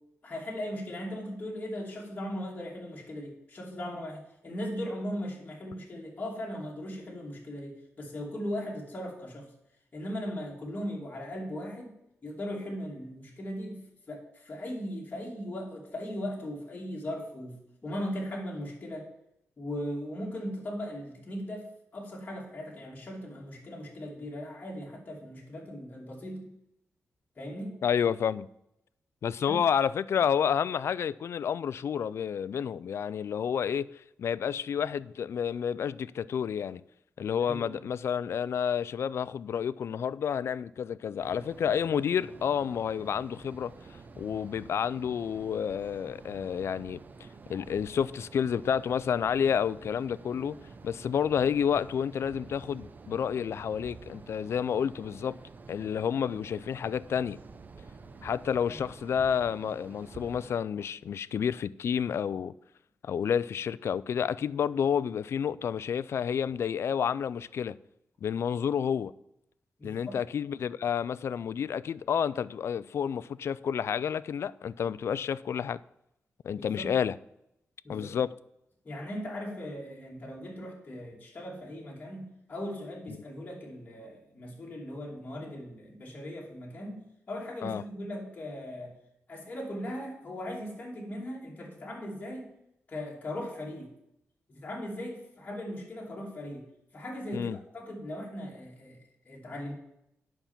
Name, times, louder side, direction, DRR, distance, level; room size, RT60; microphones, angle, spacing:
voice 1, 0.2-9.5 9.9-11.9 12.2-19.1 19.6-21.7 21.9-26.5 27.4-27.8 29.5-29.6 37.4-37.9 58.7-58.8 69.8-70.1 76.5-77.0 77.8-78.2 78.8-89.0 89.3-92.5 92.9-93.9 94.5-96.7 96.9-99.0 99.3-99.7, equal, 35° left, 2.7 m, -38 dB
voice 2, 27.8-28.5 29.2-36.8 37.2-43.7 44.2-47.0 47.5-50.6 50.8-55.4 55.7-57.4 58.2-62.5 63.0-67.8 68.2-69.1 69.8-75.8 76.4-77.2 77.9-78.4 87.6-87.8 97.3-97.6, left 8 dB, 65° left, 0.3 m, -30 dB
sound 1, 41.2-60.5, right 4 dB, 40° right, 0.7 m, -49 dB
9.2 x 5.8 x 7.3 m
wide cardioid pair, 130°, 5 cm